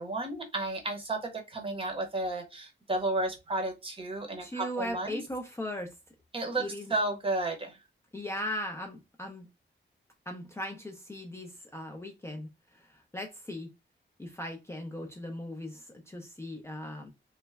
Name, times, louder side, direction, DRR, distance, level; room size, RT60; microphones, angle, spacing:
voice 1, 0.0-5.2 6.3-7.8, right 2 dB, 30° right, 0.8 m, -32 dB
voice 2, 4.4-6.0 6.6-6.9 8.1-9.5 10.3-13.7 14.2-17.1, left 1 dB, 15° left, 0.5 m, -38 dB
3.2 x 2.1 x 3.3 m
wide cardioid pair, 155°, 20 cm